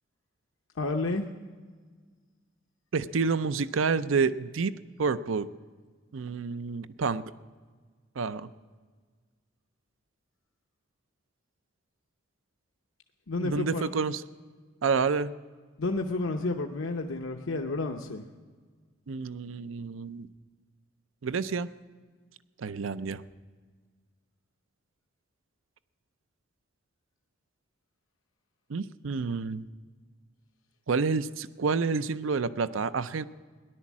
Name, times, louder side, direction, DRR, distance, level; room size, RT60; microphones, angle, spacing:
voice 1, 0.8-1.3 13.3-13.9 15.8-18.2, left 3 dB, 80° left, 3 dB, 0.8 m, -30 dB
voice 2, 2.9-5.5 6.1-7.2 8.2-8.5 13.4-14.2 14.8-15.3 19.1-20.3 21.2-21.7 22.6-23.2 28.7-29.6 30.9-33.2, right 5 dB, 80° right, 14 dB, 0.5 m, -29 dB
17.0 x 11.0 x 7.3 m, 1.5 s
head